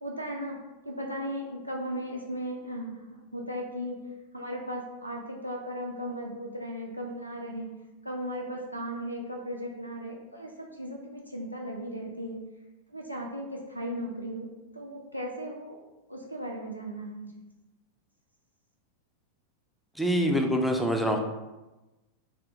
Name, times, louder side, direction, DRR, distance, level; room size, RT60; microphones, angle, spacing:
voice 1, 0.0-0.6 0.9-4.0 4.3-7.8 8.0-12.4 12.9-14.5 14.7-15.8 16.1-17.3, equal, 90° right, -2 dB, 0.3 m, -36 dB
voice 2, 20.0-21.2, equal, ahead, 3 dB, 0.4 m, -25 dB
3.4 x 2.1 x 2.5 m, 1.0 s
figure-of-eight pair, 90°, 0 cm